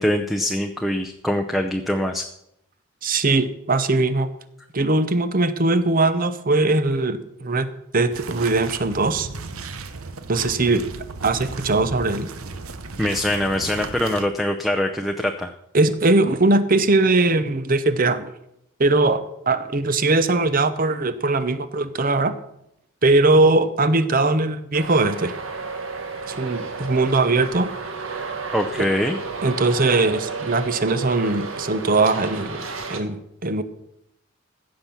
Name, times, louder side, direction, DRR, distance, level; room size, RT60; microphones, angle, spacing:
voice 1, 0.0-2.3 13.0-15.5 28.5-29.2, left 1 dB, ahead, 5 dB, 0.6 m, -23 dB
voice 2, 3.0-4.3 4.7-7.7 7.9-9.3 10.3-10.8 11.2-12.3 15.7-18.3 18.8-22.4 23.0-25.3 26.3-27.7 28.8-28.9 29.4-32.6 32.9-33.6, right 2 dB, 40° right, 12 dB, 0.8 m, -20 dB
sound 1, 8.1-14.3, right 3 dB, 85° right, 0.9 m, -35 dB
Traffic noise roadway noise, 24.7-33.0, right 4 dB, 70° right, 1.5 m, -32 dB
15.5 x 6.0 x 7.1 m, 0.81 s
head